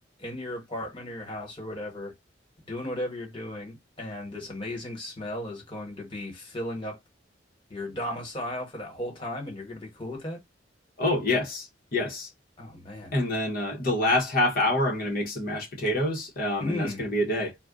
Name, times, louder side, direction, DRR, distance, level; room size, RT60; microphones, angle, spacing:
voice 1, 0.2-2.1 2.7-7.0 7.7-10.4 12.6-13.1 16.6-17.0, left 1 dB, 25° left, 1.3 m, -35 dB
voice 2, 11.0-12.3 13.1-17.6, left 1 dB, 50° left, 0.9 m, -26 dB
2.4 x 2.2 x 3.5 m
head